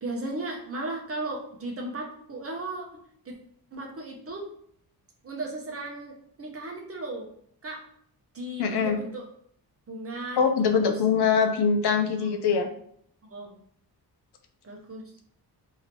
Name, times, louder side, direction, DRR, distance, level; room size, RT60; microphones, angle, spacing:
voice 1, 0.0-3.4 3.7-4.4 5.2-7.3 7.6-7.8 8.3-9.3 9.9-10.4 10.7-11.0 12.2-12.3 13.2-13.5 14.6-15.0, right 2 dB, 35° right, 1 dB, 0.8 m, -36 dB
voice 2, 8.6-9.0 10.4-12.7, left 6 dB, 80° left, 6 dB, 0.6 m, -23 dB
2.8 x 2.8 x 4.4 m, 0.65 s
wide cardioid pair, 135°, 38 cm